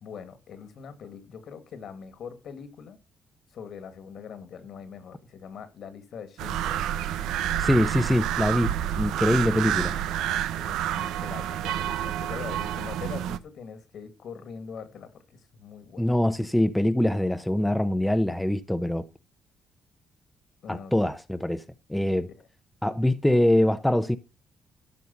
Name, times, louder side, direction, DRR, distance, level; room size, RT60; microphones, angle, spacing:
voice 1, 0.0-3.0 3.5-6.8 9.7-10.0 10.5-16.1 20.6-20.9, left 6 dB, 65° left, 2.2 m, -42 dB
sound 1, 6.4-13.4, right 11 dB, 90° right, 0.7 m, -29 dB
voice 2, 7.6-9.9 16.0-19.1 20.7-21.6 21.9-22.3 22.8-24.2, left 1 dB, 5° left, 0.8 m, -24 dB
12.5 x 5.5 x 5.5 m
cardioid pair, 90°, 0 cm